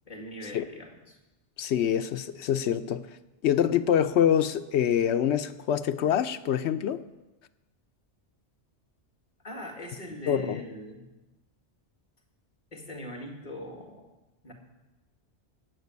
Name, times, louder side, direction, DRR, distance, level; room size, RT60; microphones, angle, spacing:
voice 1, 0.1-1.2 9.4-11.1 12.7-14.1 14.4-14.5, equal, 40° left, 0 dB, 2.3 m, -41 dB
voice 2, 1.6-3.0 3.4-7.0 10.3-10.6, left 9 dB, 75° left, 10 dB, 0.9 m, -25 dB
15.5 x 5.2 x 9.4 m, 1.1 s
omnidirectional pair, 1.2 m